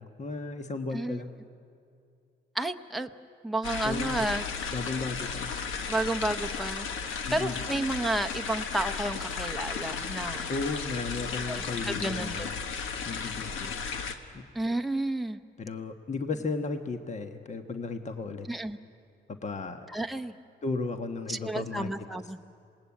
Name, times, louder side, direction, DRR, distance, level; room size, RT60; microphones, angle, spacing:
voice 1, 0.0-1.3 3.9-4.2 4.7-5.5 7.3-7.5 10.5-12.7 13.0-13.8 14.3-14.4 15.6-18.5 19.4-19.9 20.6-21.9, left 3 dB, 35° left, 7 dB, 1.3 m, -35 dB
voice 2, 2.5-3.1 3.4-4.4 5.9-6.9 7.3-10.5 11.5-12.5 14.5-15.4 18.5-18.8 19.9-20.3 21.3-22.4, right 1 dB, ahead, 5 dB, 0.9 m, -31 dB
sound 1, 3.6-14.1, left 5 dB, 85° left, 1.5 m, -34 dB
27.0 x 19.5 x 8.6 m, 2.5 s
cardioid pair, 90°, 20 cm